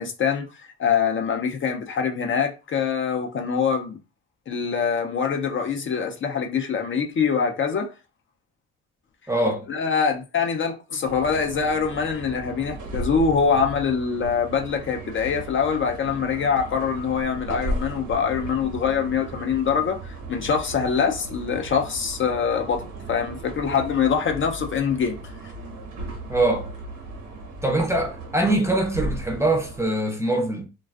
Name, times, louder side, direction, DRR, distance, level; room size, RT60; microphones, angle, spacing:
voice 1, 0.0-4.0 4.5-7.9 9.7-25.2, left 6 dB, 40° left, 0.4 m, -24 dB
voice 2, 9.3-9.7 26.3-26.7 27.6-30.7, right 1 dB, 10° right, 0.5 m, -23 dB
sound 1, 11.0-29.8, right 1 dB, 85° right, 1.0 m, -36 dB
2.4 x 2.3 x 2.3 m
cardioid pair, 90°, 30 cm